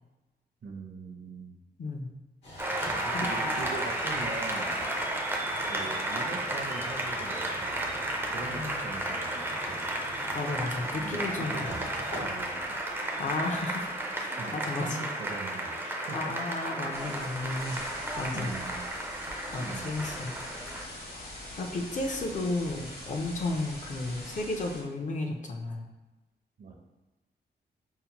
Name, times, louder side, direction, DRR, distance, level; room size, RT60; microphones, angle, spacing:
voice 1, 0.6-1.6 3.0-4.8 5.7-8.0 8.3-9.9 10.9-12.8 14.4-14.5 14.8-15.8 16.1-16.3 18.3-18.9 19.6-20.1 26.6-26.8, right 3 dB, 55° right, 1 dB, 0.6 m, -41 dB
voice 2, 1.8-2.1 3.1-3.3 8.5-8.8 10.3-11.7 13.2-13.9 14.2-15.1 15.8-17.8 18.2-18.5 19.5-20.4 21.6-25.9, left 2 dB, 45° left, 2 dB, 0.5 m, -33 dB
sound 1, 2.4-14.1, left 1 dB, 80° left, 1.2 m, -45 dB
Applause, 2.6-20.9, right 1 dB, 10° right, 0.4 m, -33 dB
sound 2, 16.9-24.8, left 1 dB, 60° left, 1.1 m, -43 dB
5.5 x 2.1 x 2.8 m, 1.1 s
wide cardioid pair, 165°, 18 cm